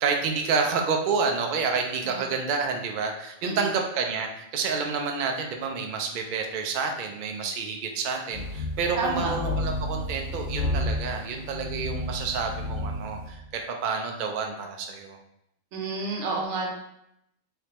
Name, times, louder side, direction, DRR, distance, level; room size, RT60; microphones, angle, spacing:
voice 1, 0.0-15.2, right 5 dB, 80° right, 3 dB, 0.4 m, -29 dB
sound 1, 8.3-13.3, left 1 dB, 70° left, 0.9 m, -31 dB
voice 2, 9.0-9.3 15.7-16.7, right 3 dB, 65° right, 0 dB, 1.0 m, -29 dB
3.2 x 3.2 x 2.9 m, 0.80 s
omnidirectional pair, 1.4 m